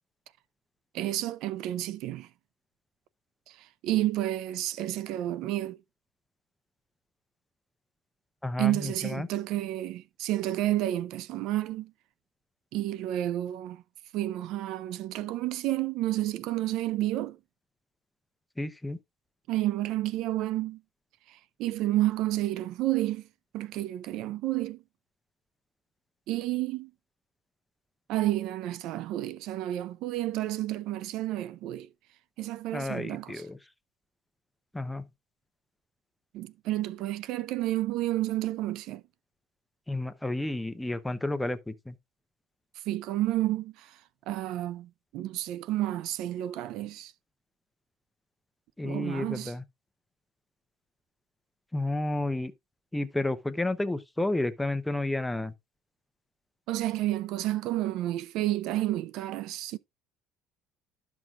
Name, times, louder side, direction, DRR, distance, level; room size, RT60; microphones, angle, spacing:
voice 1, 0.9-2.3 3.5-5.8 8.6-11.9 12.7-13.8 14.1-17.4 19.5-20.8 21.3-23.3 23.5-24.8 26.3-26.9 28.1-31.9 32.4-33.4 36.3-39.0 42.8-44.0 44.3-47.1 48.8-49.5 56.7-59.8, right 14 dB, 65° right, 0.3 m, -30 dB
voice 2, 8.4-9.3 18.6-19.0 32.7-33.6 34.7-35.0 39.9-42.0 48.8-49.6 51.7-52.5 52.9-55.5, left 2 dB, 5° left, 0.6 m, -31 dB
12.5 x 6.0 x 2.4 m
cardioid pair, 140°, 0 cm